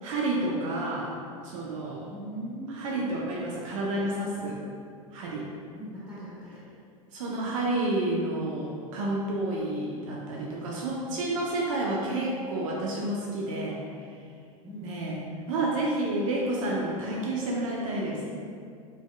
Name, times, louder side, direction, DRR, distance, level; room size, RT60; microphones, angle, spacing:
voice 1, 0.0-1.1 1.4-2.1 2.8-4.6 5.1-5.5 7.1-13.8 14.8-15.2 15.5-18.2, right 2 dB, 65° right, -3 dB, 0.4 m, -30 dB
voice 2, 2.1-3.2 5.8-6.6 14.6-15.5, equal, 5° right, -10 dB, 1.3 m, -40 dB
2.5 x 2.2 x 2.2 m, 2.3 s
hypercardioid pair, 90°, 18 cm